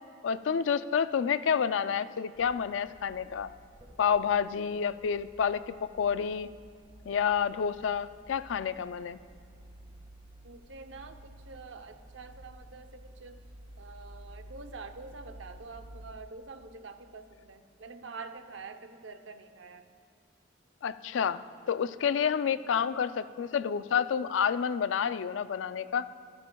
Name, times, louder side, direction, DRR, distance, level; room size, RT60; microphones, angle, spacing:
voice 1, 0.2-3.5 4.0-6.5 7.1-9.2 20.8-26.1, left 7 dB, 85° left, 14 dB, 0.4 m, -29 dB
sound 1, 2.3-16.1, right 1 dB, 25° right, 1.7 m, -53 dB
voice 2, 10.4-13.4 13.8-19.9 22.5-22.6, right 4 dB, 80° right, 7 dB, 0.8 m, -46 dB
26.0 x 9.7 x 2.3 m, 2.4 s
head